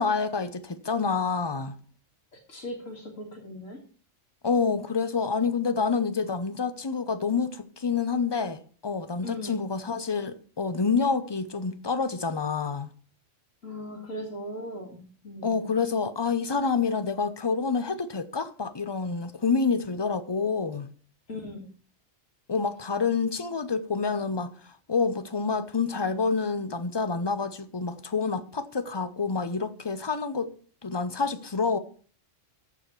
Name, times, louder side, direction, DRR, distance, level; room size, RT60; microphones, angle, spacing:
voice 1, 0.0-1.8 4.4-12.9 15.4-20.9 22.5-24.5 24.9-30.5 30.8-31.8, left 5 dB, 25° left, 0.6 m, -28 dB
voice 2, 2.5-3.8 9.2-9.6 13.6-15.8 21.3-21.7, left 1 dB, 80° left, 2.6 m, -38 dB
14.5 x 5.0 x 5.9 m
omnidirectional pair, 1.3 m